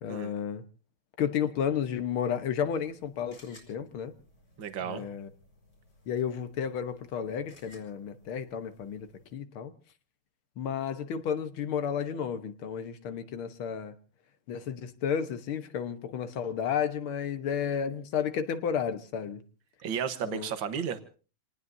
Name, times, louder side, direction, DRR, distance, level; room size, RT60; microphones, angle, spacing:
voice 1, 0.0-0.6 1.2-4.1 4.8-5.3 6.1-9.1 9.3-9.7 10.6-13.9 14.5-19.4 20.2-20.5, left 8 dB, 90° left, 10 dB, 2.0 m, -32 dB
sound 1, 2.5-9.3, left 2 dB, 65° left, 5.5 m, -60 dB
voice 2, 4.6-5.0 19.8-21.0, right 7 dB, 70° right, 9 dB, 2.0 m, -33 dB
28.0 x 19.0 x 2.7 m, 0.37 s
omnidirectional pair, 2.2 m